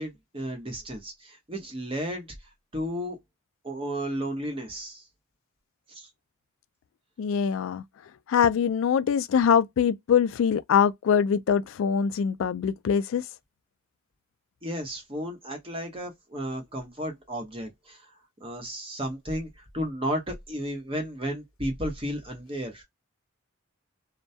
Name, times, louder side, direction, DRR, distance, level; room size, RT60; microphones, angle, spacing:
voice 1, 0.0-2.3 2.7-3.2 3.6-5.0 5.9-6.1 14.6-18.0 18.4-22.8, equal, 25° right, 0.8 m, -33 dB
voice 2, 7.2-7.8 8.3-13.2, left 7 dB, 65° left, 0.3 m, -23 dB
2.2 x 2.1 x 2.6 m
head